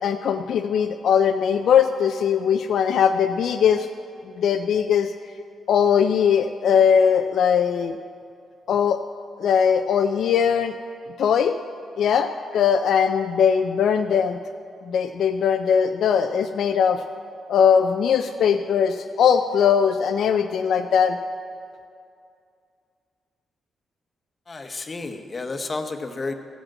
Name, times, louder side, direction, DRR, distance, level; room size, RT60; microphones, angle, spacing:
voice 1, 0.0-3.9 4.4-5.1 5.7-8.0 8.7-9.0 9.4-10.7 11.2-11.6 12.0-14.4 14.9-17.0 17.5-21.2, left 7 dB, 75° left, 7 dB, 0.4 m, -20 dB
voice 2, 24.5-26.3, left 3 dB, 35° left, 6 dB, 0.9 m, -31 dB
15.0 x 5.2 x 7.4 m, 2.4 s
cardioid pair, 75°, 0 cm